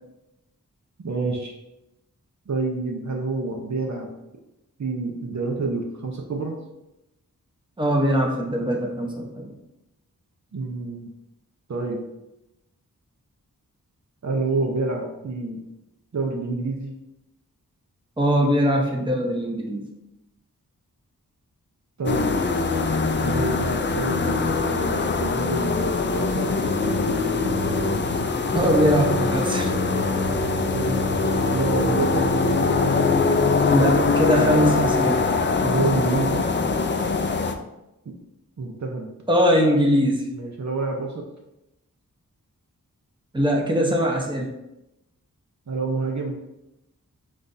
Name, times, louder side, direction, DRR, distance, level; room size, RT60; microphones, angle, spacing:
voice 1, 1.0-1.5 2.5-4.1 4.8-6.6 10.5-11.1 11.7-12.0 14.2-15.6 16.1-16.9 22.0-22.3 23.2-26.6 30.7-31.0 31.5-32.3 35.6-36.4 38.1-38.2 38.6-39.1 40.3-41.3 45.7-46.4, right 3 dB, 55° right, 1 dB, 0.7 m, -28 dB
voice 2, 7.8-9.6 18.2-19.9 28.5-29.7 33.7-35.2 39.3-40.2 43.3-44.5, equal, 15° right, 0 dB, 0.9 m, -21 dB
sound 1, 22.1-37.6, left 3 dB, 35° left, 0.4 m, -23 dB
sound 2, 26.5-35.1, left 2 dB, 80° left, 0.7 m, -30 dB
7.4 x 2.5 x 2.6 m, 0.91 s
wide cardioid pair, 65°, 35 cm